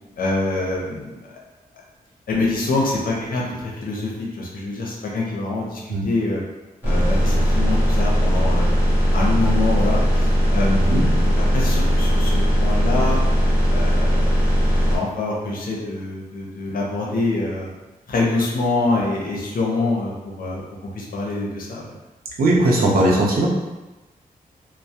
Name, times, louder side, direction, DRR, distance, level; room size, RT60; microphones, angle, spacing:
voice 1, 0.2-1.2 2.3-6.4 6.8-8.7 9.1-13.2 13.7-14.3 14.9-17.7 18.1-20.6 20.9-21.9, left 2 dB, 65° left, -3 dB, 0.6 m, -25 dB
sound 1, 6.8-15.0, equal, 10° right, 0.9 m, -18 dB
voice 2, 22.4-23.5, right 1 dB, 75° right, -3 dB, 0.6 m, -18 dB
2.2 x 2.0 x 2.7 m, 1.1 s
wide cardioid pair, 115°, 15 cm